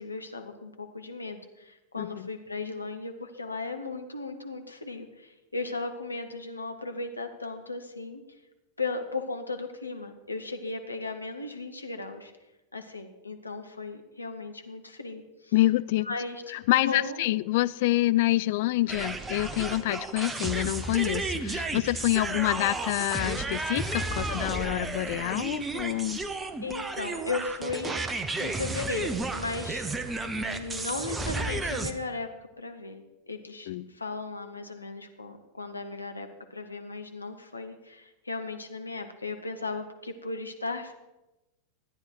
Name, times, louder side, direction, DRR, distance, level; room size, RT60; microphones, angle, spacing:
voice 1, 0.0-8.2 8.8-12.3 12.7-15.5 16.0-17.2 26.6-28.0 28.4-29.8 30.2-32.3 32.6-40.9, left 3 dB, 80° left, 5 dB, 1.1 m, -36 dB
voice 2, 2.0-2.3 15.5-16.1 16.5-26.2 33.7-33.9, left 17 dB, 50° left, 17 dB, 0.3 m, -27 dB
sound 1, 18.9-31.9, right 3 dB, 15° right, 0.8 m, -33 dB
13.0 x 9.6 x 4.6 m, 1.0 s
figure-of-eight pair, 90°, 0 cm